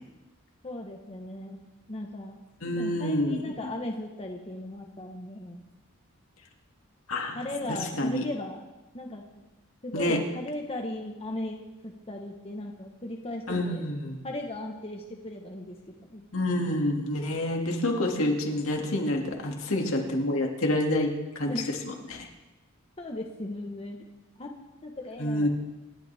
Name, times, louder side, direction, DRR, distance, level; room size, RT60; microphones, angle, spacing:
voice 1, 0.6-1.6 1.9-2.4 2.8-5.7 7.3-8.7 8.9-9.4 9.8-13.9 14.2-16.3 21.5-21.8 23.0-24.0 24.4-24.5 24.8-25.5, left 1 dB, 30° left, 1 dB, 1.2 m, -37 dB
voice 2, 2.6-3.5 7.1-7.4 7.7-8.3 9.9-10.2 13.5-14.2 16.3-21.1 21.4-21.5 21.9-22.3 25.2-25.5, left 1 dB, 70° left, 1 dB, 2.4 m, -28 dB
27.0 x 12.0 x 3.5 m, 1.1 s
head